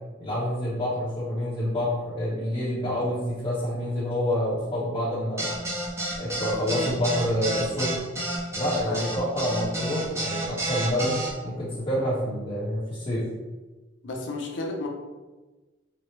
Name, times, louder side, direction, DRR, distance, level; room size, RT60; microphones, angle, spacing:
voice 1, 0.2-5.5 6.2-8.0 8.5-13.2, equal, 25° left, -13 dB, 1.0 m, -28 dB
sound 1, 5.4-11.3, right 1 dB, 15° right, 0.6 m, -30 dB
voice 2, 8.8-9.2 14.0-14.9, left 2 dB, 65° left, 1 dB, 0.6 m, -32 dB
4.4 x 2.1 x 3.2 m, 1.2 s
head